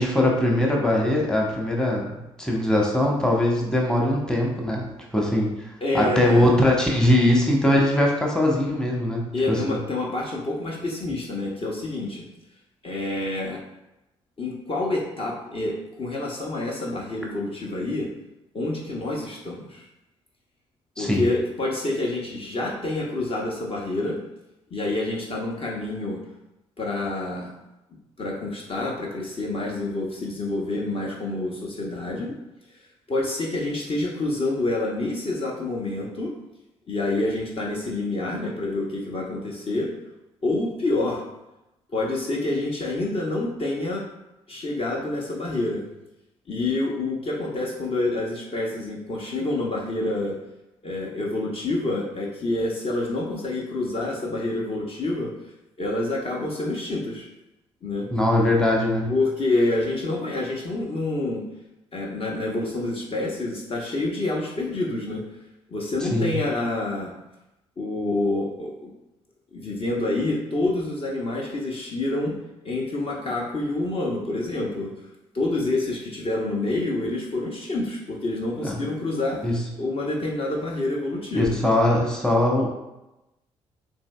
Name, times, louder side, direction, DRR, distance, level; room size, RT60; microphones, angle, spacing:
voice 1, 0.0-4.9 5.1-5.5 5.9-9.8 21.0-21.2 58.1-59.1 66.1-66.3 78.6-78.7 79.4-79.6 81.3-82.7, left 1 dB, 5° left, -1 dB, 1.0 m, -21 dB
voice 2, 5.8-6.6 9.3-12.2 12.8-13.6 14.4-18.1 18.5-19.9 21.0-24.2 24.7-26.2 26.8-27.5 28.2-32.3 32.7-32.8 33.1-36.3 36.9-39.9 40.4-41.2 41.9-44.0 44.5-45.8 46.5-50.3 50.8-55.3 55.8-57.3 57.8-58.1 59.1-61.4 61.9-65.2 65.7-67.1 67.8-68.9 69.5-72.3 72.6-74.9 75.3-81.6, left 2 dB, 35° left, -2 dB, 0.9 m, -27 dB
7.1 x 2.7 x 2.2 m, 0.94 s
figure-of-eight pair, 45°, 15 cm